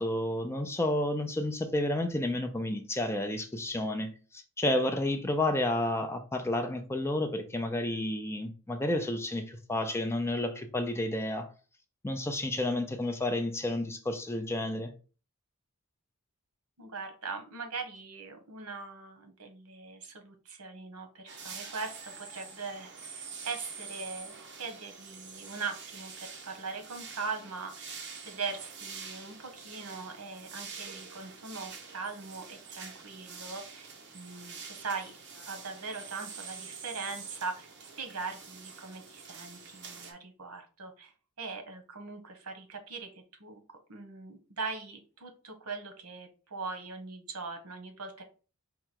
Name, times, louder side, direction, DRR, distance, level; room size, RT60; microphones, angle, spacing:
voice 1, 0.0-11.5 12.0-14.9, left 1 dB, 10° left, 0.4 m, -31 dB
voice 2, 16.8-27.9 28.3-35.1 35.5-37.7 38.0-41.1 41.4-48.2, right 4 dB, 80° right, 1.1 m, -41 dB
sound 1, 21.3-40.1, right 5 dB, 50° right, 0.9 m, -46 dB
4.8 x 2.3 x 4.5 m
head